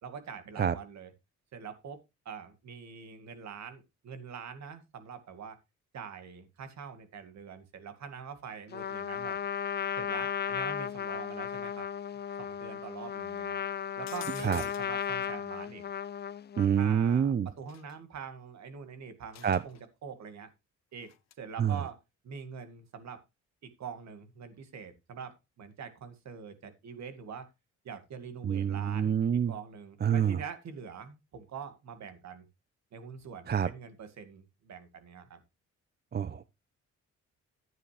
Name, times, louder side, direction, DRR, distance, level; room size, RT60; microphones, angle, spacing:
voice 1, 0.0-1.1 1.5-2.0 2.3-5.6 5.9-9.4 10.0-11.9 12.4-13.6 14.0-15.8 16.8-20.5 20.9-21.1 21.4-22.0 22.2-23.2 23.6-27.5 27.8-29.1 29.5-32.4 32.9-35.4, right 6 dB, 65° right, 2.2 m, -44 dB
Trumpet, 8.7-16.8, left 8 dB, 35° left, 0.5 m, -35 dB
sound 1, 14.1-15.1 17.7-18.0 19.3-19.8 21.0-21.3, left 11 dB, 60° left, 0.9 m, -49 dB
voice 2, 16.6-17.5 19.4-19.6 21.6-21.8 28.4-29.5 30.0-30.4 33.5-33.7 36.1-36.4, right 8 dB, 35° right, 0.6 m, -27 dB
11.5 x 9.2 x 3.4 m
cardioid pair, 90°, 30 cm